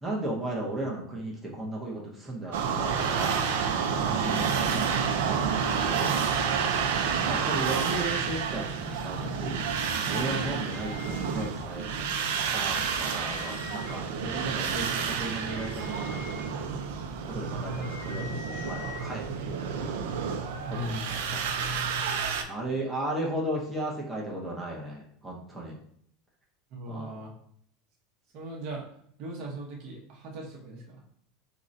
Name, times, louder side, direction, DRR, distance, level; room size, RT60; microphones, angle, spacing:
voice 1, 0.0-3.7 4.0-6.8 7.1-9.6 10.0-11.8 12.4-16.7 17.2-20.0 20.7-21.9 22.5-25.8 26.9-27.2, right 1 dB, 10° right, -4 dB, 0.6 m, -36 dB
sound 1, 2.5-22.4, right 6 dB, 80° right, 0.3 m, -29 dB
sound 2, 10.3-11.9 12.3-12.4 12.7-14.2 14.7-19.1, left 5 dB, 35° left, 0.6 m, -46 dB
voice 2, 20.7-21.1 26.7-27.3 28.3-28.8 29.2-31.0, right 1 dB, 50° right, -2 dB, 0.7 m, -38 dB
3.7 x 2.1 x 2.5 m, 0.65 s
supercardioid pair, 135°, 0 cm